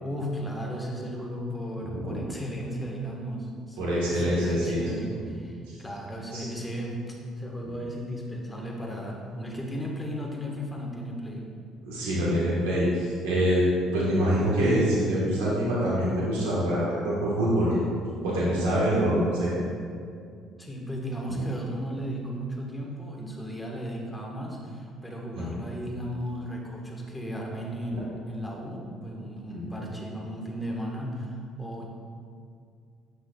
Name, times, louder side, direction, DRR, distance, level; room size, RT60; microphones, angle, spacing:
voice 1, 0.0-11.4 20.6-31.9, equal, 15° left, -1 dB, 1.5 m, -35 dB
voice 2, 3.8-4.8 5.7-5.8 6.3-6.5 11.8-13.6 13.9-17.8 18.2-19.5 25.4-25.5 29.5-29.9, equal, 85° right, -6 dB, 1.4 m, -25 dB
8.1 x 6.0 x 2.4 m, 2.3 s
hypercardioid pair, 60°, 0 cm